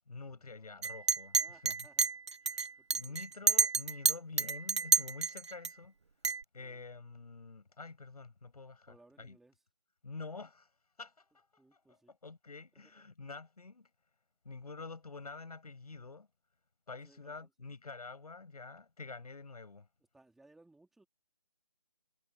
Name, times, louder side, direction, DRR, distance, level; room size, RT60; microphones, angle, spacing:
voice 1, 0.1-1.4 1.6-1.7 2.5-2.6 3.0-5.9 6.5-9.4 10.0-10.7 11.0-11.5 11.7-13.9 14.5-16.3 16.9-19.9, left 4 dB, 70° left, 7.1 m, -48 dB
Chink clink, 0.8-5.7 6.2-6.4, right 5 dB, 45° right, 0.5 m, -29 dB
voice 2, 1.4-2.1 2.5-2.6 2.9-3.2 6.6-6.8 8.9-9.6 11.6-12.2 12.8-13.0 17.0-17.5 20.1-21.1, right 2 dB, ahead, 3.0 m, -63 dB
figure-of-eight pair, 170°, 20 cm